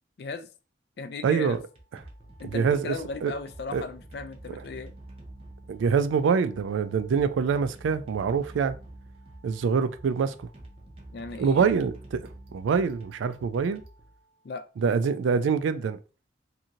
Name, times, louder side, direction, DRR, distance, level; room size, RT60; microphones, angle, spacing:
voice 1, 0.2-0.5 1.0-1.6 2.4-4.9 11.1-11.7 14.4-14.6, left 4 dB, 55° left, 0.3 m, -37 dB
voice 2, 1.2-1.6 2.4-3.0 3.2-3.3 3.7-3.8 5.7-8.8 9.4-10.5 11.4-13.8 14.8-16.0, right 6 dB, 85° right, 0.3 m, -25 dB
sound 1, 1.5-14.6, right 1 dB, 30° right, 0.5 m, -48 dB
2.8 x 2.7 x 2.4 m
head